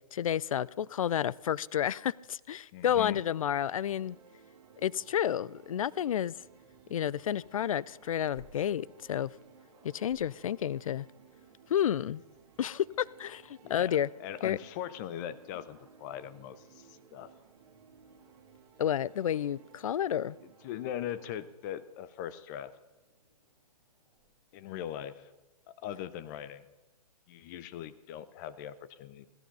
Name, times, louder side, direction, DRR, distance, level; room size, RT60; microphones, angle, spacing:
voice 1, 0.1-4.2 4.8-6.3 6.9-9.3 9.8-11.1 11.7-12.2 12.6-14.1 14.4-14.6 18.8-20.4, left 10 dB, 60° left, 0.4 m, -30 dB
voice 2, 2.7-3.2 13.6-17.3 20.6-22.7 24.5-25.3 25.7-26.6 27.3-29.3, left 10 dB, 30° left, 0.7 m, -40 dB
sound 1, 3.1-21.4, right 6 dB, 45° right, 2.9 m, -58 dB
Growling, 7.2-11.7 12.3-12.4 12.8-13.9 15.0-17.8 18.1-18.6 19.5-21.3 22.5-25.0, right 3 dB, 15° right, 5.5 m, -67 dB
15.0 x 12.5 x 5.4 m
figure-of-eight pair, 130°, 20 cm